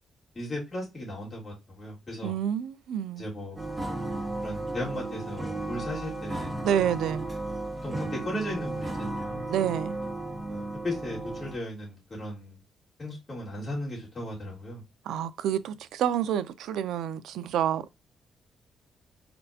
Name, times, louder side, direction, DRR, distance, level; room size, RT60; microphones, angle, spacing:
voice 1, 0.3-2.3 3.1-3.6 4.4-6.6 7.8-9.4 10.5-12.6 13.0-14.8, left 1 dB, 20° left, 3.0 m, -36 dB
voice 2, 2.2-3.2 6.6-7.3 9.5-10.0 15.1-17.9, right 10 dB, 85° right, 0.4 m, -28 dB
sound 1, 3.6-11.6, right 2 dB, 15° right, 0.8 m, -34 dB
4.3 x 4.2 x 2.6 m
cardioid pair, 170°, 0 cm